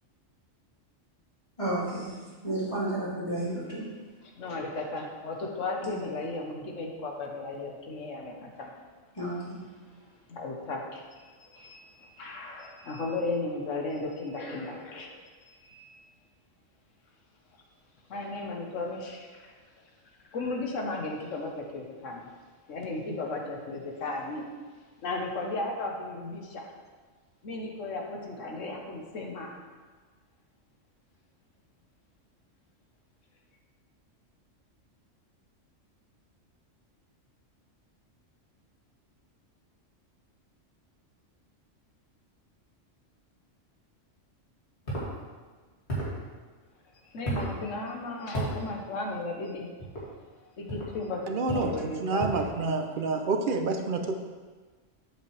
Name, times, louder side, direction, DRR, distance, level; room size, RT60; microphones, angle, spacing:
voice 1, 1.6-2.1 2.4-3.9 5.8-6.0 9.1-9.6, right 1 dB, 25° left, -9 dB, 2.6 m, -32 dB
voice 2, 4.4-8.7 10.3-15.1 15.4-15.9 18.1-19.5 20.3-22.2 22.7-24.4 25.0-26.7 27.4-29.6 47.0-49.7 50.6-51.2 51.5-52.3, left 2 dB, 75° left, 1 dB, 1.4 m, -35 dB
sound 1, 44.9-45.1 45.9-46.2 47.2-47.5 48.3-48.6 49.8-50.1 50.7-50.9 51.5-51.8 52.2-52.5, right 1 dB, 55° left, 2.7 m, -32 dB
voice 3, 51.3-54.2, right 3 dB, 50° right, 5 dB, 0.7 m, -28 dB
8.3 x 7.5 x 3.3 m, 1.4 s
omnidirectional pair, 1.3 m